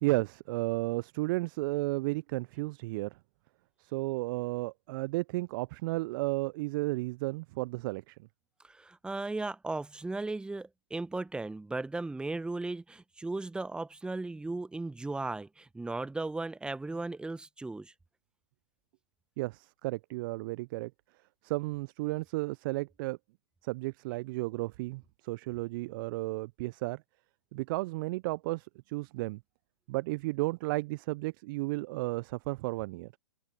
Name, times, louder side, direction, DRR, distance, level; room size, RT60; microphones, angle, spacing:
voice 1, 0.0-3.2 3.8-8.2 19.4-20.9 21.4-23.2 23.6-27.0 27.5-29.4 29.9-33.1, right 22 dB, 40° right, 0.6 m, -33 dB
voice 2, 8.6-17.9, right 2 dB, 5° right, 1.3 m, -36 dB
figure-of-eight pair, 110°, 17 cm